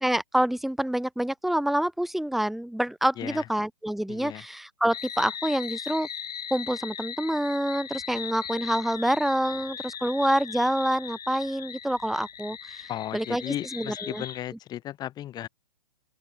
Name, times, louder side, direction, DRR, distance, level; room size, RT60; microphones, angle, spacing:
voice 1, 0.0-6.1 6.5-14.2, right 1 dB, ahead, 4.9 m, -27 dB
voice 2, 4.1-4.4 12.9-15.5, left 12 dB, 20° left, 4.4 m, -35 dB
sound 1, 4.9-14.4, left 8 dB, 75° left, 6.9 m, -38 dB
open air
hypercardioid pair, 150°, 21 cm